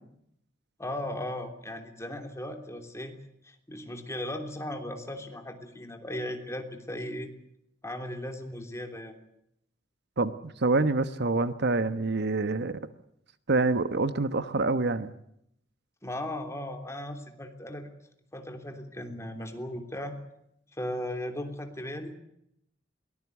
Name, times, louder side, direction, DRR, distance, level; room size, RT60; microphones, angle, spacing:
voice 1, 0.8-3.2 3.4-7.3 7.8-9.2 16.0-17.9 18.3-20.2 20.8-22.1, left 1 dB, 15° left, 5 dB, 3.3 m, -37 dB
voice 2, 10.2-12.8 13.5-15.1, right 3 dB, 60° right, 12 dB, 1.1 m, -26 dB
22.5 x 19.5 x 8.2 m, 0.76 s
head